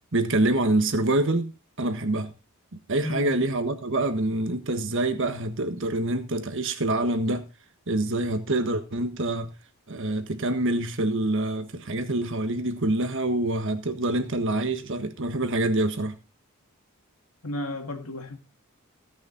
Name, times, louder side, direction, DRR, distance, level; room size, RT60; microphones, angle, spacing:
voice 1, 0.1-1.5 1.8-2.3 2.9-7.4 7.9-9.5 9.9-16.2, right 2 dB, 60° right, 1.4 m, -26 dB
voice 2, 3.0-3.4 17.4-18.4, left 1 dB, 75° left, 2.2 m, -33 dB
17.0 x 6.4 x 4.0 m
head